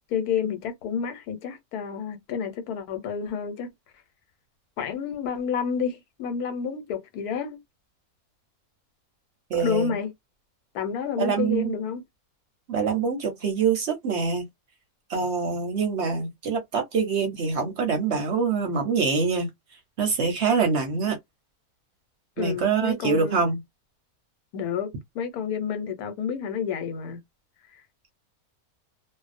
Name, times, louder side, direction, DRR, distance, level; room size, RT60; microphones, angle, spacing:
voice 1, 0.1-3.7 4.8-7.6 9.5-10.1 10.7-12.0 22.4-23.4 24.5-27.2, left 7 dB, 85° left, 1.2 m, -30 dB
voice 2, 9.5-10.0 11.2-11.7 12.7-14.4 15.1-19.5 20.0-21.2 22.4-23.6, right 5 dB, 60° right, 0.8 m, -25 dB
2.6 x 2.0 x 2.4 m
omnidirectional pair, 1.6 m